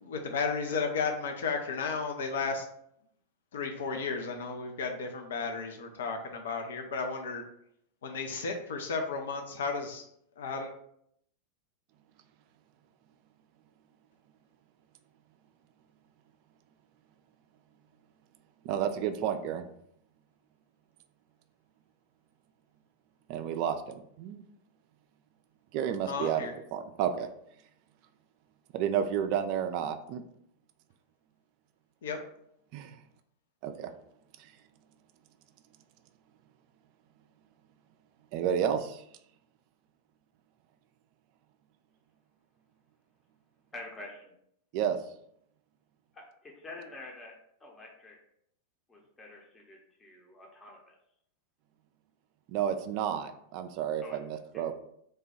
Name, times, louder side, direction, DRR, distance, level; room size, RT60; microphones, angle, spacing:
voice 1, 0.0-2.6 3.5-7.4 8.0-10.0 10.4-10.7 26.0-26.5 32.0-32.2, left 4 dB, 60° left, 4 dB, 0.4 m, -33 dB
voice 2, 18.6-19.6 23.3-24.4 25.7-27.3 28.7-30.2 32.7-33.0 33.6-33.9 38.3-39.0 44.7-45.0 52.5-54.8, right 9 dB, 45° right, 8 dB, 0.3 m, -31 dB
voice 3, 43.7-44.3 46.1-47.3 47.6-48.1 48.9-50.9 54.0-54.2, left 2 dB, 15° left, -1 dB, 0.7 m, -47 dB
3.2 x 2.2 x 4.3 m, 0.72 s
figure-of-eight pair, 90°, 0 cm